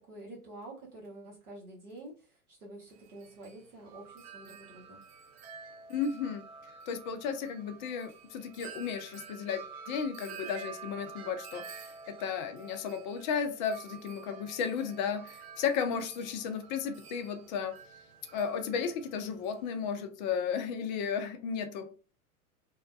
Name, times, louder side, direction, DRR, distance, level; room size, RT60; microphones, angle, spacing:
voice 1, 0.0-5.0, right 2 dB, 90° right, 1.2 m, -48 dB
Wind chime, 2.9-19.8, right 6 dB, 50° right, 0.6 m, -49 dB
voice 2, 5.9-6.4 6.9-17.8 18.3-21.9, left 6 dB, 35° left, 0.4 m, -34 dB
2.7 x 2.2 x 2.3 m
figure-of-eight pair, 95°, 43 cm